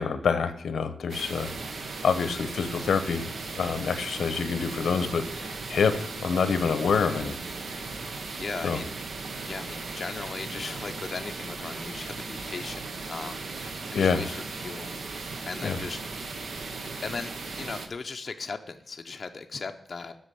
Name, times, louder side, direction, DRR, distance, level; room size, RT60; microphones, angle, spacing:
voice 1, 0.0-1.5 2.0-3.3 3.6-5.9 6.2-7.4 8.6-8.8 13.9-14.2 15.6-15.8, left 6 dB, 90° left, 11 dB, 0.8 m, -26 dB
sound 1, 1.1-17.9, right 3 dB, 65° right, 1.0 m, -37 dB
voice 2, 8.3-13.5 13.9-14.9 15.5-16.0 17.0-20.2, left 4 dB, 40° left, 5 dB, 0.6 m, -38 dB
8.3 x 6.4 x 7.6 m, 0.74 s
wide cardioid pair, 155°, 0 cm